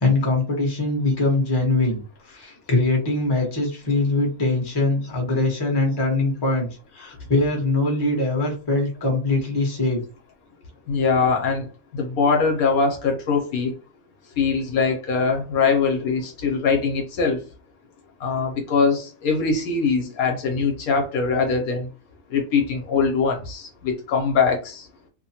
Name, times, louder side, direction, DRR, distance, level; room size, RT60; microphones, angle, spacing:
voice 1, 0.0-2.0 2.3-10.0, left 2 dB, 20° left, 0.7 m, -22 dB
voice 2, 10.9-11.7 11.9-13.7 14.4-17.4 18.2-21.9 22.3-24.9, left 5 dB, 70° left, 1.0 m, -22 dB
2.8 x 2.1 x 2.7 m
omnidirectional pair, 1.7 m